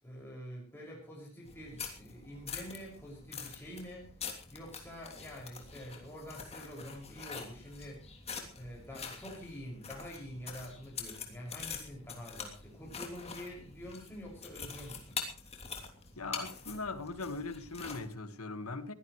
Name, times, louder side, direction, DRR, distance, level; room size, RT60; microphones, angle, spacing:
voice 1, 0.0-4.1 4.5-8.1 8.5-15.2, equal, 10° left, 6.2 m, -46 dB
sound 1, 1.5-18.1, left 5 dB, 30° left, 3.1 m, -45 dB
voice 2, 16.2-18.9, left 3 dB, 80° left, 1.7 m, -40 dB
22.5 x 16.5 x 3.2 m
head